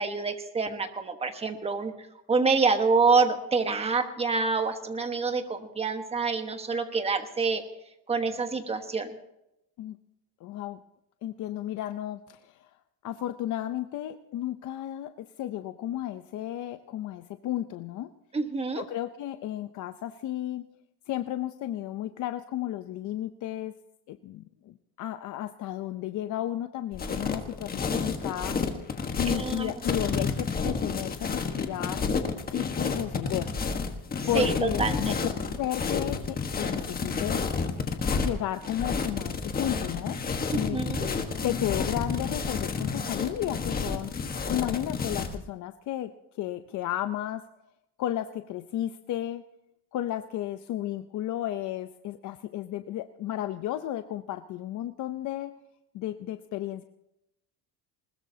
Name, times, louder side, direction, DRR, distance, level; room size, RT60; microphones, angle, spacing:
voice 1, 0.0-1.9 2.3-7.6 8.1-9.1 18.3-18.8 29.2-29.7 34.3-35.1 40.5-41.1, right 4 dB, 15° right, 6 dB, 1.3 m, -27 dB
voice 2, 10.4-10.8 11.2-12.7 13.0-18.1 18.7-20.6 21.1-23.7 24.1-28.6 29.1-32.0 32.5-33.5 34.3-35.1 35.6-37.4 38.1-40.2 40.5-44.1 44.5-47.4 48.0-49.4 49.9-55.5 55.9-56.8, left 12 dB, 50° left, 9 dB, 0.6 m, -33 dB
sound 1, 26.9-45.4, left 5 dB, 25° left, 1.3 m, -30 dB
20.5 x 20.0 x 2.8 m, 0.86 s
cardioid pair, 165°, 38 cm